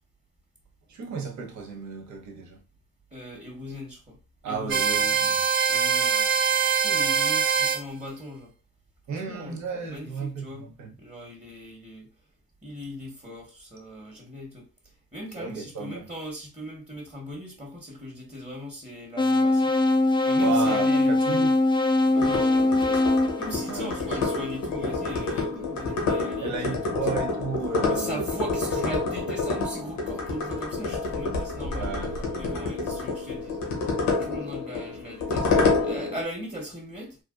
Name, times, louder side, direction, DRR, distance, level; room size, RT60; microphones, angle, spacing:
voice 1, 0.9-2.6 4.4-5.4 9.1-10.9 15.4-16.1 20.4-21.5 23.7-24.0 26.4-28.2 31.7-32.6, right 5 dB, 70° right, 0.8 m, -33 dB
voice 2, 3.1-4.2 4.5-5.0 5.7-6.3 6.8-8.5 9.1-9.6 9.9-10.7 11.0-12.1 12.6-14.7 15.1-19.7 20.2-21.1 22.0-23.0 23.4-27.1 27.9-32.0 32.4-33.6 34.1-37.2, equal, 20° right, 1.2 m, -39 dB
sound 1, 4.7-7.8, right 7 dB, 40° right, 0.6 m, -23 dB
sound 2, 19.2-24.3, left 2 dB, 15° left, 0.4 m, -22 dB
sound 3, 22.1-36.2, left 3 dB, 80° left, 1.0 m, -28 dB
3.3 x 2.4 x 2.4 m
supercardioid pair, 40°, 29 cm